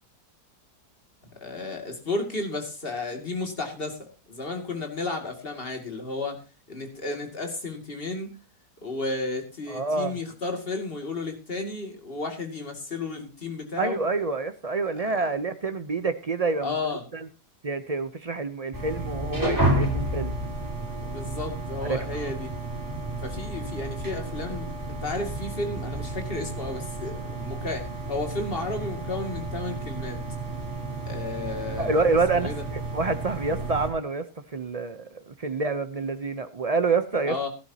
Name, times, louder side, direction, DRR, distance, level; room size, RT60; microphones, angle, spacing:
voice 1, 1.3-6.4 6.7-8.4 8.8-14.0 14.9-15.1 16.6-17.0 21.0-22.5 23.2-30.2 31.1-32.6 37.3-37.5, left 3 dB, 35° left, 4 dB, 2.5 m, -33 dB
voice 2, 9.7-10.2 13.8-16.7 17.1-17.3 17.6-20.4 21.8-22.3 31.8-34.3 34.5-37.4, right 3 dB, 45° right, 10 dB, 0.4 m, -27 dB
sound 1, 18.7-33.9, right 1 dB, 10° right, 3.4 m, -31 dB
17.5 x 11.5 x 2.8 m, 0.31 s
omnidirectional pair, 1.7 m